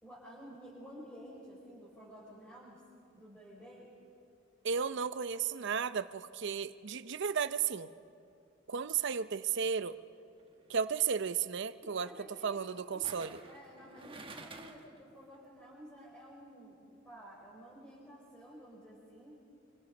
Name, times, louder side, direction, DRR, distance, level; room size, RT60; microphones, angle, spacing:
voice 1, 0.0-2.8 3.1-3.9 11.8-16.8 17.0-19.4, equal, 10° left, -8 dB, 4.6 m, -52 dB
voice 2, 4.6-7.9 8.7-10.0 10.7-12.1 12.4-13.4, right 6 dB, 65° right, 13 dB, 0.6 m, -34 dB
sound 1, 10.4-10.7 13.0-15.0 15.3-15.4, right 3 dB, 30° right, 1.4 m, -50 dB
27.0 x 24.0 x 5.3 m, 2.6 s
head